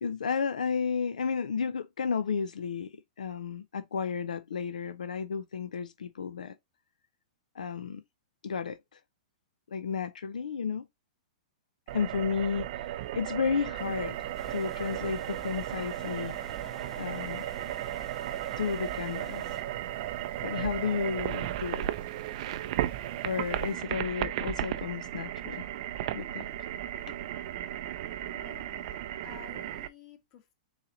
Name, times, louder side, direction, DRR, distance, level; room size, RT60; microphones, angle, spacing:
voice 1, 0.0-6.5 7.5-8.0 8.4-9.0 9.7-10.9 11.9-16.3 17.0-17.4 18.6-19.4 20.4-21.9 23.2-25.7 26.1-26.5 27.1-27.2, left 6 dB, 85° left, 0.4 m, -32 dB
sound 1, 11.9-29.9, right 13 dB, 55° right, 0.4 m, -35 dB
sound 2, 13.8-23.8, right 10 dB, 40° right, 0.8 m, -51 dB
sound 3, 14.3-19.6, left 2 dB, 10° left, 0.7 m, -50 dB
voice 2, 28.3-30.5, left 8 dB, 40° left, 1.4 m, -52 dB
4.0 x 2.9 x 3.8 m
hypercardioid pair, 125°, 4 cm